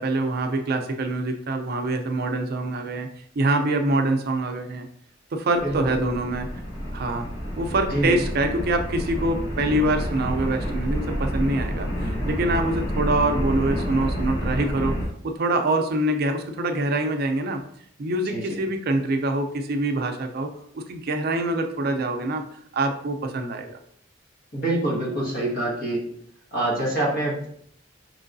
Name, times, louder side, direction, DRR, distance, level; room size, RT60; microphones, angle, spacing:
voice 1, 0.0-3.1 3.4-4.9 5.3-6.5 6.9-7.3 7.6-15.0 15.2-17.6 18.0-22.4 22.7-23.8, right 2 dB, 55° right, 5 dB, 0.4 m, -25 dB
voice 2, 5.6-5.9 7.9-8.2 18.3-18.6 24.5-26.0 26.5-27.5, right 1 dB, 55° left, -3 dB, 1.4 m, -25 dB
sound 1, 5.6-15.0, equal, 25° left, 1.1 m, -29 dB
4.6 x 3.0 x 2.6 m, 0.67 s
head